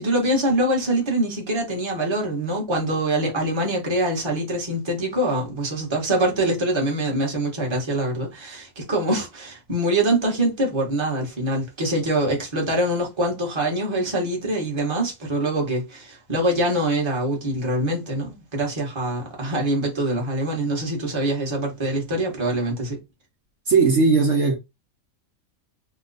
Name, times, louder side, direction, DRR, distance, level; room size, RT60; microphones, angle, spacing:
voice 1, 0.0-23.0, right 1 dB, 20° right, 1.1 m, -24 dB
voice 2, 23.7-24.5, right 4 dB, 60° right, 1.1 m, -17 dB
3.0 x 2.2 x 3.8 m
omnidirectional pair, 1.5 m